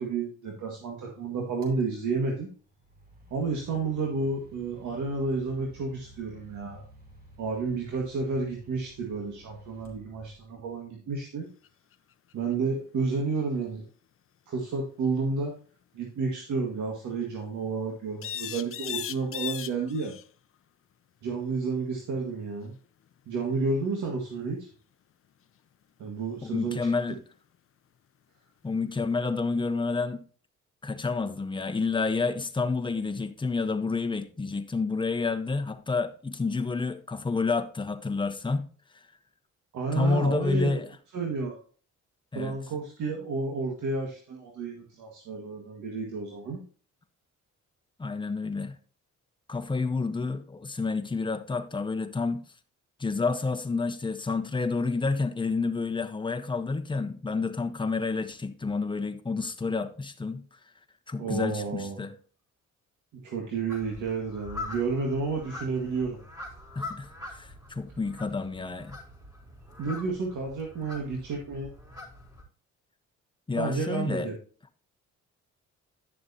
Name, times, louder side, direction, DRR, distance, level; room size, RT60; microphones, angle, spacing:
voice 1, 0.0-2.5 3.3-6.8 7.4-11.5 12.3-13.9 14.5-15.5 15.9-20.1 21.2-22.7 23.3-24.7 26.0-26.8 39.7-40.7 41.1-41.6 42.3-46.6 61.2-62.0 63.2-66.2 69.8-71.7 73.6-74.3, right 4 dB, 75° right, 1.9 m, -31 dB
sound 1, 1.6-1.8 2.7-10.7, right 1 dB, 30° right, 3.8 m, -53 dB
sound 2, 11.6-11.7 11.9-12.5 18.2-20.3 23.1-23.2 26.8-26.9, left 10 dB, 45° left, 0.6 m, -36 dB
voice 2, 26.4-27.2 28.6-30.2 30.8-38.7 39.9-40.9 42.3-42.6 48.0-48.8 49.5-52.4 53.0-60.4 61.1-62.1 66.7-69.0 73.5-74.3, left 4 dB, 15° left, 1.0 m, -29 dB
sound 3, 63.7-72.4, left 2 dB, 15° right, 4.1 m, -43 dB
11.0 x 6.8 x 2.8 m
cardioid pair, 90°, 30 cm